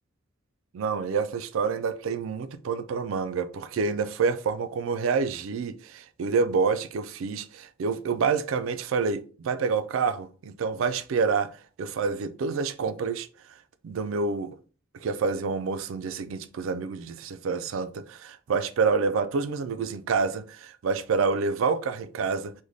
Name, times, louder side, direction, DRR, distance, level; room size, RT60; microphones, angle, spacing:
voice 1, 0.7-11.5 11.8-13.3 13.8-14.6 15.0-22.5, right 5 dB, 75° right, 0.4 m, -28 dB
3.8 x 2.2 x 3.2 m
head